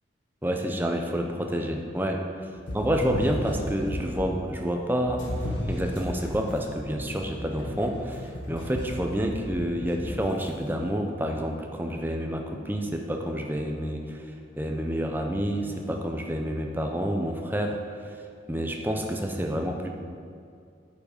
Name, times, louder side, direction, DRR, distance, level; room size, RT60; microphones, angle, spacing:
voice 1, 0.4-2.3 2.7-5.3 5.7-18.2 18.5-19.9, equal, 10° right, 2 dB, 0.7 m, -29 dB
sound 1, 2.6-4.3 5.1-10.5, left 1 dB, 85° left, 1.8 m, -34 dB
9.1 x 7.4 x 5.3 m, 2.3 s
head